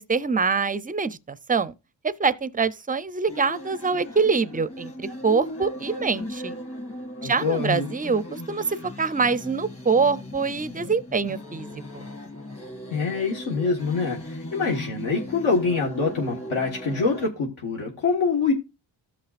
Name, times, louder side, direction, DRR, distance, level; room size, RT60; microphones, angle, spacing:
voice 1, 0.0-1.7 2.0-6.6 7.2-11.7 11.9-12.0, right 5 dB, 20° right, 0.4 m, -25 dB
sound 1, 3.3-17.3, left 1 dB, 30° left, 2.3 m, -38 dB
voice 2, 7.2-7.9 12.9-18.5, left 4 dB, 70° left, 1.6 m, -25 dB
14.5 x 5.7 x 2.5 m
wide cardioid pair, 105°, 49 cm